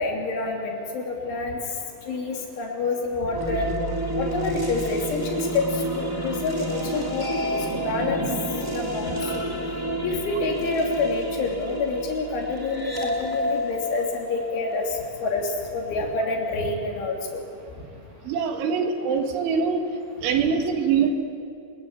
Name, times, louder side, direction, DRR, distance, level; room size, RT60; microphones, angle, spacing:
voice 1, 0.0-1.6 2.1-3.7 4.1-5.7 5.9-8.2 8.7-9.5 10.0-17.4, left 3 dB, 75° left, 0 dB, 5.6 m, -28 dB
sound 1, 3.3-15.4, equal, 15° right, 0.9 m, -29 dB
voice 2, 18.3-19.8 20.2-21.1, right 6 dB, 75° right, 5 dB, 4.3 m, -23 dB
26.5 x 21.5 x 9.0 m, 2.6 s
omnidirectional pair, 5.5 m